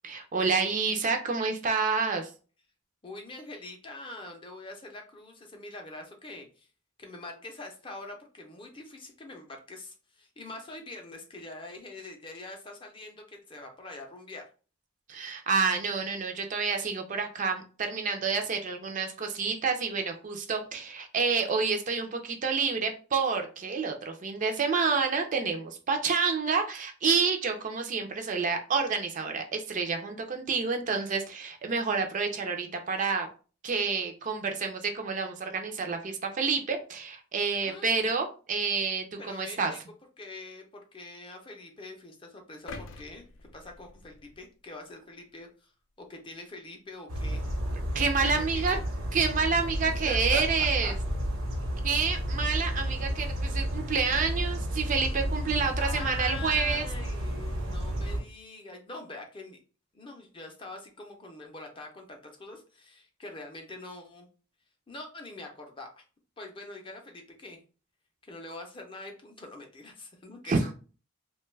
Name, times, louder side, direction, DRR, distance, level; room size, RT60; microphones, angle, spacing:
voice 1, 0.0-2.3 15.1-33.3 33.6-39.7 47.9-48.8 49.1-50.9 51.8-56.8 70.5-70.6, right 5 dB, 40° right, 5 dB, 0.4 m, -28 dB
voice 2, 3.0-6.7 7.0-14.4 37.6-37.9 39.2-39.8 40.2-45.7 46.0-47.4 48.2-48.8 50.0-50.4 50.8-50.9 55.8-59.6 59.9-64.3 64.9-66.0 66.4-67.6 68.2-70.5, left 2 dB, 25° left, 2 dB, 0.5 m, -44 dB
sound 1, 42.7-44.8 45.3-45.5, left 3 dB, 75° left, 0.4 m, -46 dB
sound 2, 47.1-58.2, equal, 85° right, 0.9 m, -31 dB
2.9 x 2.2 x 3.2 m, 0.37 s
head